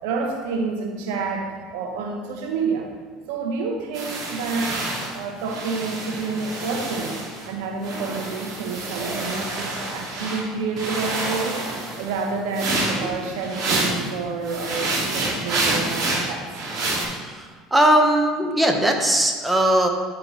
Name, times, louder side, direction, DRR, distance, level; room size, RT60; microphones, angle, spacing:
voice 1, 0.0-2.9 3.3-4.9 5.1-7.2 7.5-11.6 12.0-16.5 18.0-18.2, right 4 dB, 70° right, 2 dB, 1.0 m, -29 dB
sound 1, 3.9-7.5 7.8-10.4 10.8-14.1 14.4-17.0, right 2 dB, 50° right, 2.4 m, -28 dB
voice 2, 17.1-19.9, right 1 dB, 10° right, 3 dB, 1.2 m, -20 dB
13.0 x 4.6 x 3.2 m, 1.5 s
hypercardioid pair, 70°, 0 cm